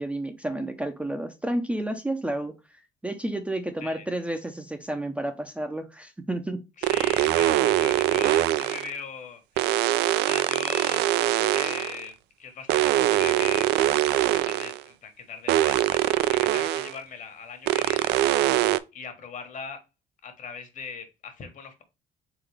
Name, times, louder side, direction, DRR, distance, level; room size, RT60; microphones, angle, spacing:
voice 1, 0.0-2.5 3.0-6.6, right 1 dB, 5° right, 0.5 m, -31 dB
voice 2, 6.8-9.7 10.2-19.8 20.2-21.8, left 5 dB, 50° left, 1.3 m, -40 dB
sound 1, 6.8-8.9 9.6-12.0 12.7-14.8 15.5-16.9 17.7-18.8, right 14 dB, 80° right, 0.4 m, -23 dB
3.9 x 3.8 x 3.3 m
cardioid pair, 110°, 17 cm